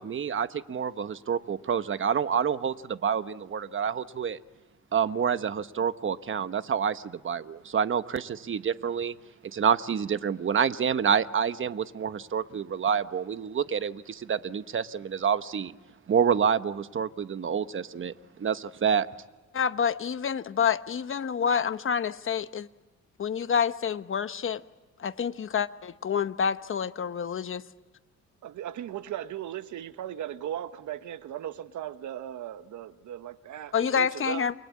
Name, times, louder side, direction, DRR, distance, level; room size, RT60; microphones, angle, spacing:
voice 1, 0.0-4.4 4.9-9.1 9.4-15.7 16.1-18.1 18.4-19.1, right 7 dB, 40° right, 1.2 m, -28 dB
voice 2, 19.5-22.7 23.2-24.6 25.0-27.6 33.7-34.5, left 7 dB, 45° left, 1.1 m, -28 dB
voice 3, 28.4-34.5, right 11 dB, 75° right, 1.4 m, -37 dB
29.5 x 23.0 x 8.6 m
cardioid pair, 90°, 30 cm